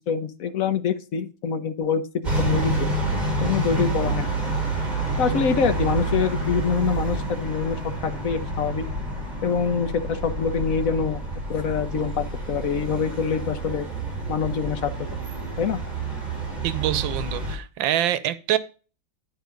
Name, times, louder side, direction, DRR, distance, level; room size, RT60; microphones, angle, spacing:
voice 1, 0.0-2.9 3.4-4.6 5.2-8.9 9.4-11.2 11.5-13.9 14.3-15.1 15.6-15.8, left 6 dB, 55° left, 1.2 m, -25 dB
sound 1, 2.2-17.6, right 2 dB, 20° right, 3.1 m, -28 dB
voice 2, 16.6-18.6, right 12 dB, 90° right, 1.4 m, -25 dB
10.5 x 4.7 x 5.1 m
omnidirectional pair, 2.0 m